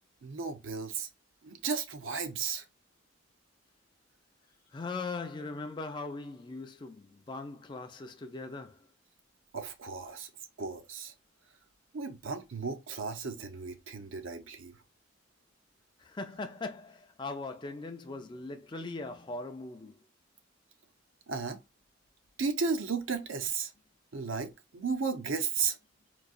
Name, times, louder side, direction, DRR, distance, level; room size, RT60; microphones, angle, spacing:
voice 1, 0.2-1.1 1.4-2.6 9.5-10.3 10.6-11.1 11.9-14.7 21.3-21.6 22.4-23.7 24.1-25.8, right 5 dB, 75° right, 0.7 m, -34 dB
voice 2, 4.7-8.8 16.0-20.0, left 3 dB, 25° left, 0.4 m, -40 dB
4.0 x 2.7 x 2.4 m
head